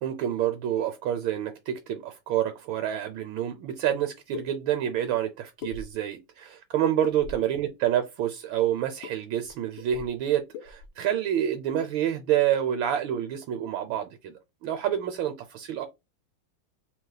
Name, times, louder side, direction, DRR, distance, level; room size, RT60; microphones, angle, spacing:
voice 1, 0.0-14.3 14.6-15.9, right 10 dB, 80° right, 1.4 m, -28 dB
sound 1, 3.9-4.0 4.3-4.5 5.6-6.2 7.0-7.5 9.0-9.2 9.4-9.5 9.8-10.2 10.5-10.9, left 6 dB, 75° left, 1.3 m, -39 dB
3.3 x 3.0 x 3.8 m
omnidirectional pair, 2.2 m